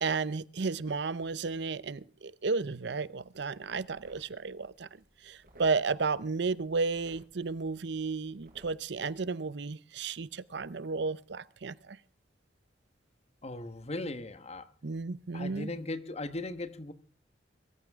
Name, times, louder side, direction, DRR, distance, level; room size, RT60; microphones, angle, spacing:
voice 1, 0.0-4.9 5.2-12.0 14.8-15.7, right 4 dB, 65° right, 0.7 m, -33 dB
sound 1, 3.3-9.3, right 1 dB, 50° right, 6.4 m, -61 dB
voice 2, 13.4-14.7 15.3-16.9, left 2 dB, 35° left, 1.3 m, -38 dB
23.0 x 14.5 x 3.6 m
head